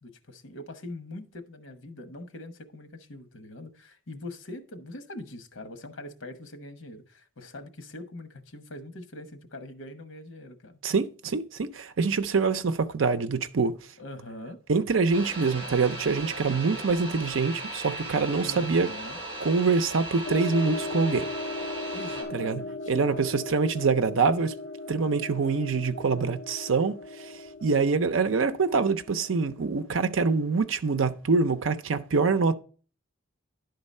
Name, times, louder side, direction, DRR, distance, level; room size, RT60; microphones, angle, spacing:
voice 1, 0.0-10.8 14.0-14.6 18.4-19.2 21.9-23.3, left 1 dB, 85° left, 1.1 m, -43 dB
voice 2, 10.8-13.8 14.7-18.9 19.4-21.3 22.3-24.5 24.9-32.6, right 4 dB, 85° right, 0.6 m, -25 dB
sound 1, 15.1-22.2, right 2 dB, 30° right, 3.7 m, -37 dB
sound 2, 20.2-29.8, left 2 dB, 55° left, 0.5 m, -38 dB
10.5 x 3.9 x 5.3 m
head